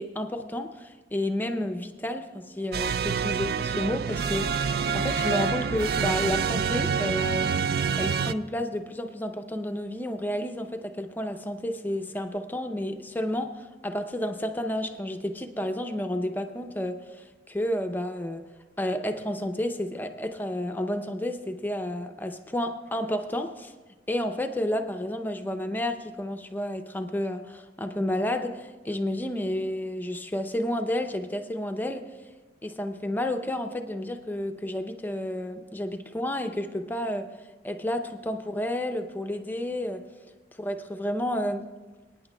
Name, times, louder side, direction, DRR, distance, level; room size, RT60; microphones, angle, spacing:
voice 1, 0.0-7.7 8.0-18.4 18.8-23.7 24.1-32.0 32.6-37.3 37.6-40.1 40.6-41.7, left 1 dB, 10° left, 7 dB, 0.5 m, -31 dB
sound 1, 2.7-8.3, right 6 dB, 60° right, 0.3 m, -27 dB
26.5 x 9.5 x 2.2 m, 1.3 s
head